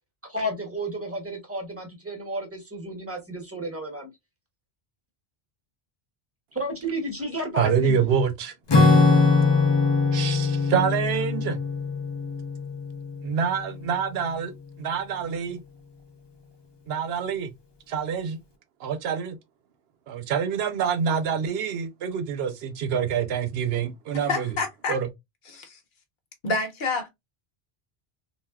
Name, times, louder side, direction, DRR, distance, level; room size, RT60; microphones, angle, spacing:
voice 1, 0.2-4.0 6.5-8.1, right 1 dB, 15° right, 0.9 m, -32 dB
voice 2, 7.6-8.5 10.1-11.6 13.2-14.5 14.8-15.6 16.9-17.5 17.9-18.4 18.8-19.4 20.1-24.5 24.9-25.1, right 7 dB, 75° right, 0.9 m, -26 dB
Acoustic guitar / Strum, 8.7-13.5, left 4 dB, 40° left, 0.4 m, -21 dB
voice 3, 24.1-25.0 25.5-25.8 26.4-27.1, left 3 dB, 55° left, 1.0 m, -28 dB
3.4 x 2.4 x 2.2 m
omnidirectional pair, 1.0 m